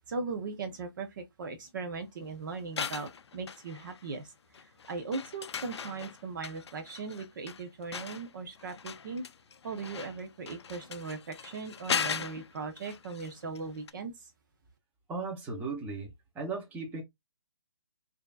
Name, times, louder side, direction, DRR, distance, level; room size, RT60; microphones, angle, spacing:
voice 1, 0.1-9.3 9.6-14.3, right 4 dB, 45° right, 0.8 m, -39 dB
sound 1, 2.6-4.2 4.5-13.6 13.9-14.0, left 6 dB, 75° left, 0.4 m, -39 dB
voice 2, 15.1-16.1 16.3-17.0, right 4 dB, 10° right, 0.9 m, -36 dB
4.9 x 2.7 x 2.3 m
hypercardioid pair, 150°, 14 cm